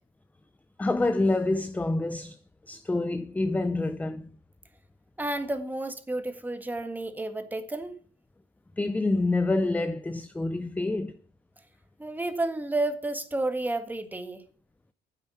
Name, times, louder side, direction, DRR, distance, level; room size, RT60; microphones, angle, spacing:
voice 1, 0.8-2.4 2.7-4.3 8.8-11.1, left 2 dB, 10° left, 0.5 m, -27 dB
voice 2, 5.2-7.9 12.0-14.4, right 2 dB, 10° right, 1.7 m, -31 dB
9.9 x 7.7 x 7.1 m
cardioid pair, 110°, 17 cm